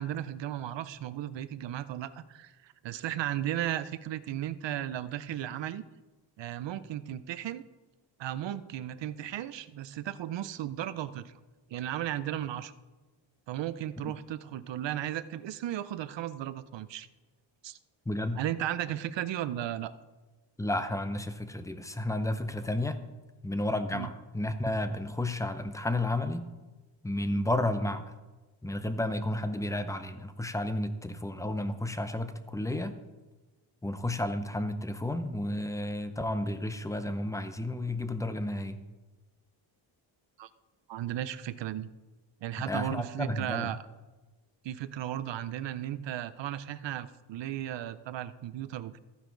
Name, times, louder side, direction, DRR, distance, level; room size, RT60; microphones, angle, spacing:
voice 1, 0.0-5.8 6.4-7.6 8.2-11.3 11.7-12.7 13.5-17.1 17.6-17.8 18.4-19.9 23.9-24.1 27.3-27.4 40.4-40.5 40.9-41.9 42.4-43.8 44.6-49.0, right 12 dB, 60° right, 14 dB, 0.7 m, -35 dB
voice 2, 18.1-18.4 20.6-23.0 23.4-26.5 27.0-28.0 28.6-32.9 33.8-38.8 42.7-43.7, left 1 dB, 5° left, 10 dB, 0.5 m, -32 dB
14.5 x 9.8 x 3.9 m, 1.2 s
wide cardioid pair, 155°, 49 cm